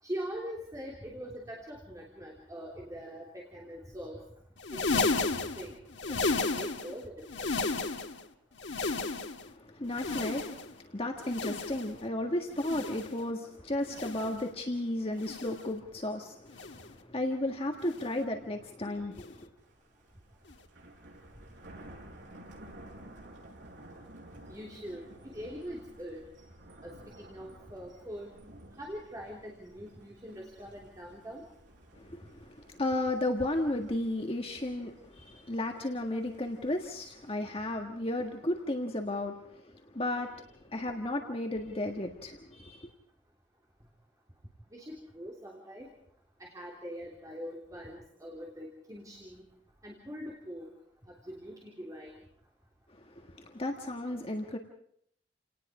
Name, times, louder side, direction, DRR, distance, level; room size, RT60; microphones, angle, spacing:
voice 1, 0.0-4.2 4.7-5.8 6.1-7.5 24.5-26.2 26.8-28.3 28.8-31.4 44.7-45.9 46.4-49.4 49.8-50.7 51.2-52.1, equal, 20° right, -1 dB, 3.2 m, -43 dB
sound 1, 4.6-7.0 7.2-8.2 8.5-9.5 9.9-10.8 11.2-12.0 12.5-13.2 13.9-14.4 15.2-15.7 16.5-16.9 17.9-18.2 19.2-19.4 20.5-20.6, left 3 dB, 85° left, 1.6 m, -33 dB
voice 2, 9.4-19.5 31.9-42.9 53.0-54.6, left 1 dB, 30° left, 3 dB, 1.6 m, -34 dB
Thunder, 19.6-37.3, right 1 dB, 85° right, 7.5 m, -54 dB
29.5 x 18.5 x 4.9 m, 0.68 s
head